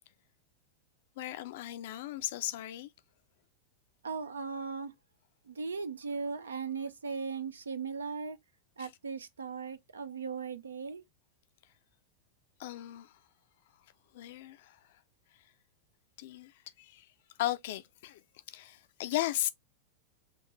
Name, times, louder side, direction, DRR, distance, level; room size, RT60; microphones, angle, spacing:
voice 1, 1.2-2.9 8.8-8.9 12.6-13.2 14.1-15.0 16.2-17.1 17.4-18.2 18.5-19.5, left 14 dB, 55° left, 0.5 m, -36 dB
voice 2, 4.0-4.9 5.5-8.4 8.8-11.0, right 5 dB, 70° right, 0.6 m, -38 dB
5.9 x 2.5 x 3.1 m
figure-of-eight pair, 90°, 0 cm